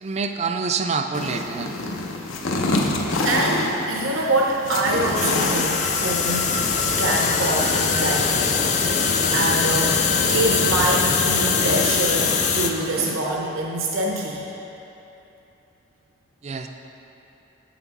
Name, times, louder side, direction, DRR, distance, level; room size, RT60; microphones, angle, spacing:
voice 1, 0.0-1.7 16.4-16.7, right 4 dB, 35° right, 6 dB, 0.3 m, -26 dB
sound 1, 1.1-13.1, left 2 dB, 85° left, 0.7 m, -29 dB
voice 2, 2.9-6.5 6.9-8.5 9.3-14.4, right 2 dB, 80° right, -2 dB, 0.7 m, -25 dB
sound 2, 5.1-12.7, left 5 dB, 35° left, 0.4 m, -22 dB
8.8 x 5.9 x 4.1 m, 3.0 s
head